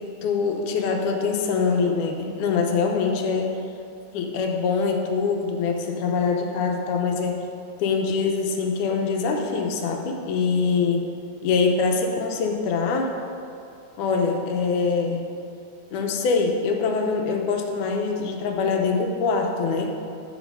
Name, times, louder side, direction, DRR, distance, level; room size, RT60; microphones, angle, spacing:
voice 1, 0.2-3.5 4.1-7.4 7.8-11.1 11.4-13.1 14.0-15.2 15.9-19.9, left 5 dB, 85° left, 3 dB, 2.3 m, -24 dB
8.2 x 6.1 x 5.3 m, 2.6 s
omnidirectional pair, 3.5 m